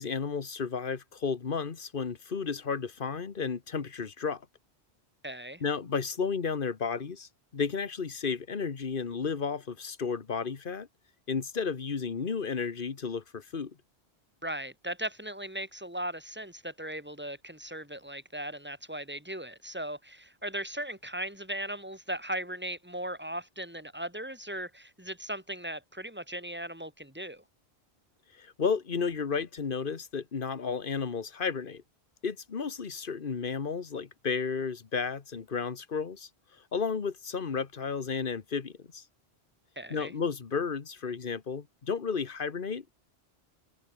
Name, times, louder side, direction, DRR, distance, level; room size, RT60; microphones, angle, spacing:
voice 1, 0.0-4.4 5.6-10.9 11.3-13.7 28.4-31.8 32.2-36.3 36.7-39.0 39.9-43.0, left 5 dB, 55° left, 1.5 m, -33 dB
voice 2, 5.2-5.6 14.4-27.4 39.8-40.1, right 1 dB, 10° right, 2.4 m, -38 dB
omnidirectional pair, 1.0 m